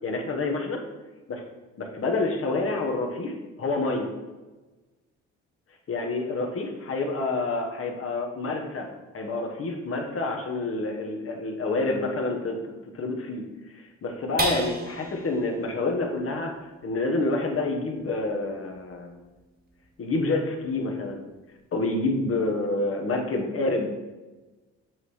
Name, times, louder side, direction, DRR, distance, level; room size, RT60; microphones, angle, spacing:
voice 1, 0.0-0.8 1.3-1.4 1.8-3.3 3.6-4.1 5.9-8.9 9.1-13.4 13.7-16.5 16.8-19.1 20.0-21.3 21.7-23.9, left 2 dB, 50° left, 2 dB, 1.2 m, -28 dB
sound 1, 14.4-21.1 21.6-21.7 22.1-22.5, right 2 dB, 30° right, 1.4 m, -37 dB
7.7 x 3.2 x 4.3 m, 1.2 s
cardioid pair, 90°, 30 cm